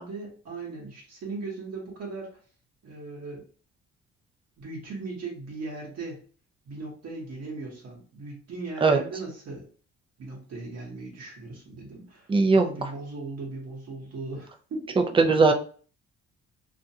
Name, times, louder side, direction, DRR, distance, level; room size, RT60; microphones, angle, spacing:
voice 1, 0.0-2.4 2.8-3.4 4.6-6.2 6.6-9.7 10.2-15.1, right 3 dB, 55° right, -3 dB, 1.0 m, -38 dB
voice 2, 12.3-12.7 15.2-15.5, right 4 dB, 20° right, 6 dB, 0.4 m, -18 dB
2.5 x 2.2 x 2.7 m, 0.41 s
cardioid pair, 90°, 30 cm